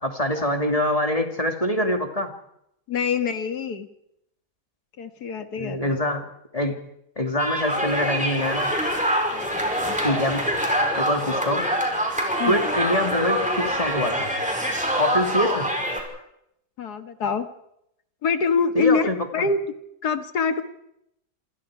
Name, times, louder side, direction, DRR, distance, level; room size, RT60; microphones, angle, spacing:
voice 1, 0.0-2.3 5.6-6.2 6.5-6.8 7.2-8.7 10.0-10.4 11.0-11.7 12.5-14.3 15.0-15.7 18.7-19.5, left 1 dB, 15° left, 3 dB, 2.6 m, -24 dB
voice 2, 2.9-3.9 5.0-6.0 9.3-10.0 12.4-12.6 16.8-17.5 18.2-19.6 20.0-20.6, left 5 dB, 55° left, 8 dB, 2.1 m, -25 dB
sound 1, 7.4-16.0, equal, 5° right, 5.3 m, -25 dB
27.5 x 27.0 x 5.0 m, 0.78 s
omnidirectional pair, 2.2 m